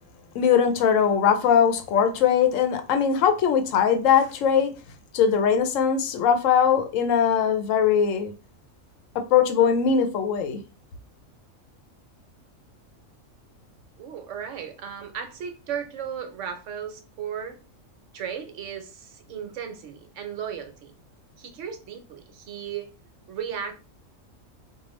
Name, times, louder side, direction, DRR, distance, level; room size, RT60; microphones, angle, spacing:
voice 1, 0.3-4.7 5.1-8.3 9.1-10.6, left 7 dB, 75° left, 1.0 m, -21 dB
voice 2, 14.0-17.6 18.1-20.9 21.4-22.9 23.3-23.7, right 8 dB, 65° right, 1.0 m, -35 dB
4.5 x 2.3 x 3.0 m
omnidirectional pair, 1.4 m